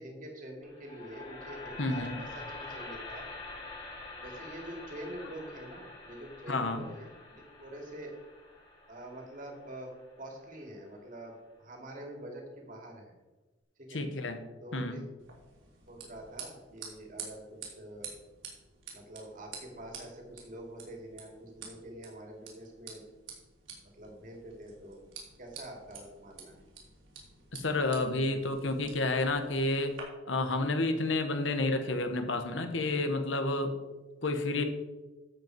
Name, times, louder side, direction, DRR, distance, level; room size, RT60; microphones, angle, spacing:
voice 1, 0.0-3.3 4.2-8.1 8.9-9.9 10.2-13.1 13.8-14.0 14.6-15.0 15.9-18.1 18.9-23.0 24.0-25.0 25.4-26.6, right 1 dB, 40° right, 1 dB, 2.6 m, -46 dB
sound 1, 0.6-10.8, left 3 dB, 25° left, 3.0 m, -46 dB
voice 2, 1.8-2.2 6.5-6.9 13.9-14.4 14.7-15.0 27.5-29.9 30.3-33.7 34.2-34.6, left 2 dB, 70° left, 7 dB, 1.4 m, -30 dB
sound 2, 15.2-30.0, right 6 dB, 80° right, 3.5 m, -49 dB
12.5 x 8.2 x 4.8 m, 1.2 s
head